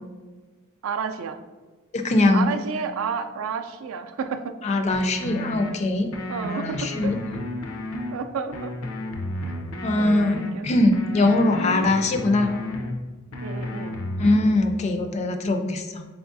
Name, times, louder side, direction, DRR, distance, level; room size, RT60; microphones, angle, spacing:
voice 1, 0.8-1.4 2.3-4.6 6.3-7.1 8.1-8.7 10.0-10.7 13.4-14.0, right 6 dB, 75° right, 8 dB, 0.3 m, -31 dB
voice 2, 1.9-2.5 4.6-6.1 6.5-7.2 9.8-10.4 10.6-12.5 14.2-16.1, left 2 dB, 35° left, 6 dB, 0.3 m, -21 dB
sound 1, 4.9-5.7 6.1-8.1 8.5-10.5 10.9-12.9 13.3-14.5, left 1 dB, 85° left, 0.5 m, -32 dB
3.9 x 3.5 x 2.5 m, 1.3 s
head